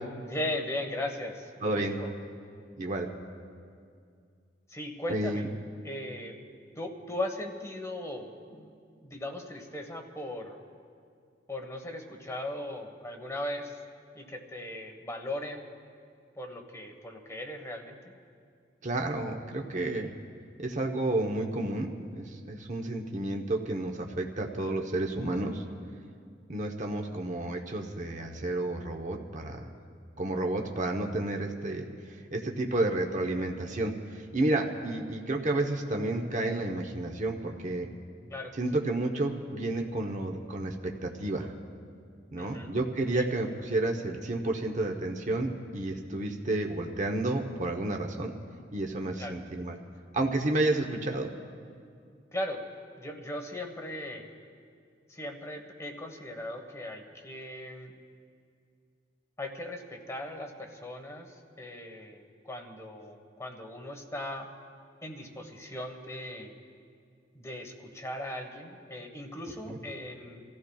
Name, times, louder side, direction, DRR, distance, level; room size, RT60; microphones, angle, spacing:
voice 1, 0.2-2.1 4.7-5.5 5.8-6.4 6.7-10.6 11.5-13.8 14.1-15.6 16.3-18.0 38.3-38.5 42.4-42.7 43.1-43.2 49.2-49.3 52.3-52.6 53.0-54.3 55.1-57.9 59.4-64.5 65.0-66.6 67.3-70.4, left 1 dB, 15° left, 3 dB, 1.3 m, -38 dB
voice 2, 1.6-2.0 2.8-3.1 5.1-5.5 18.8-20.1 20.6-25.6 26.5-29.7 30.2-31.9 32.3-37.9 38.6-41.5 42.3-48.3 48.7-49.8 50.1-51.3 69.7-69.8, right 2 dB, 40° right, 2 dB, 0.9 m, -31 dB
29.0 x 14.5 x 2.3 m, 2.2 s
head